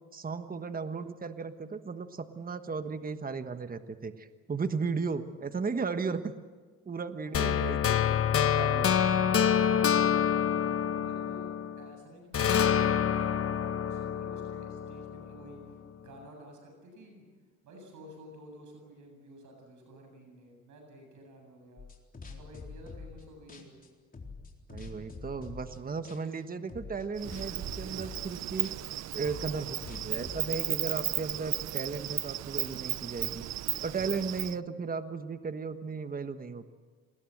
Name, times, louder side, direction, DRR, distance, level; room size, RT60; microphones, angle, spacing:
voice 1, 0.0-6.3 6.8-8.9 24.7-28.7 29.1-33.4 33.8-36.7, right 5 dB, 30° right, 9 dB, 1.4 m, -35 dB
voice 2, 7.2-7.9 8.8-11.5 11.8-17.3 17.6-21.9 22.3-23.8 29.4-29.9, right 1 dB, 75° right, 3 dB, 7.7 m, -51 dB
sound 1, 7.3-11.9 12.3-15.4, left 9 dB, 50° left, 1.1 m, -27 dB
sound 2, 21.8-23.2 23.5-25.8 26.0-26.4 26.7-30.5, left 4 dB, 30° left, 4.0 m, -45 dB
Insect, 27.2-34.6, right 13 dB, 60° right, 0.6 m, -35 dB
27.5 x 20.0 x 7.9 m, 1.5 s
cardioid pair, 90°, 30 cm